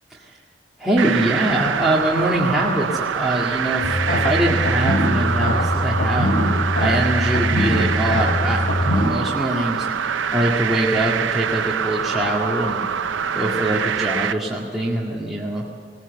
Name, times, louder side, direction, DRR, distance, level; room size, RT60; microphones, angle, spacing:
voice 1, 0.8-6.3 6.8-9.9 10.3-12.9 13.3-15.6, right 1 dB, ahead, -6 dB, 1.9 m, -23 dB
sound 1, 1.0-14.3, right 7 dB, 85° right, 0.6 m, -25 dB
sound 2, 3.8-9.1, left 1 dB, 55° left, 3.2 m, -22 dB
20.5 x 18.5 x 8.1 m, 2.6 s
head